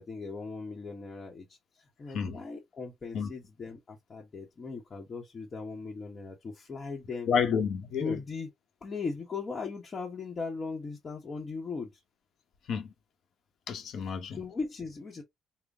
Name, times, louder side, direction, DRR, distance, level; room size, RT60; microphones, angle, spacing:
voice 1, 0.0-1.6 2.0-7.3 8.0-8.5 8.8-11.9 14.1-15.2, left 4 dB, 40° left, 1.0 m, -38 dB
voice 2, 7.3-8.2 12.7-12.9 13.7-14.4, left 6 dB, 70° left, 1.0 m, -30 dB
3.9 x 2.2 x 3.5 m
cardioid pair, 90°, 0 cm